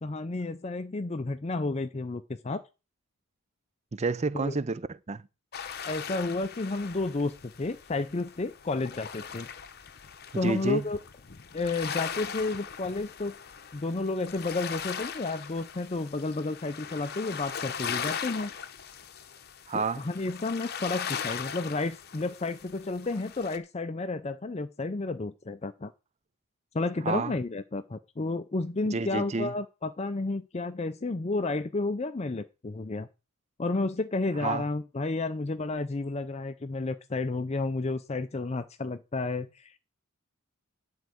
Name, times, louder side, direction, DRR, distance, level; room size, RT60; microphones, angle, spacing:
voice 1, 0.0-2.6 4.3-4.6 5.8-9.5 10.3-11.0 11.5-13.3 13.7-18.5 19.7-25.9 26.7-33.1 33.6-39.8, left 3 dB, 30° left, 0.5 m, -31 dB
voice 2, 3.9-5.2 10.3-10.9 19.7-20.0 27.1-27.3 28.9-29.5 34.4-34.7, right 4 dB, 30° right, 0.4 m, -30 dB
sound 1, 5.5-23.6, left 7 dB, 45° left, 0.8 m, -39 dB
10.5 x 4.6 x 7.8 m
head